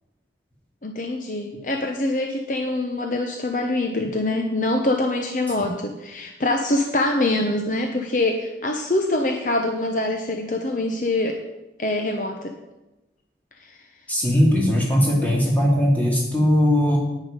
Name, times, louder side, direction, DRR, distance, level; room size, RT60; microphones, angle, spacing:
voice 1, 0.8-11.4 11.8-12.5 13.6-13.8, left 2 dB, 45° left, 4 dB, 0.8 m, -24 dB
voice 2, 14.1-17.0, equal, 10° left, -3 dB, 2.5 m, -19 dB
10.0 x 9.5 x 5.1 m, 1.0 s
head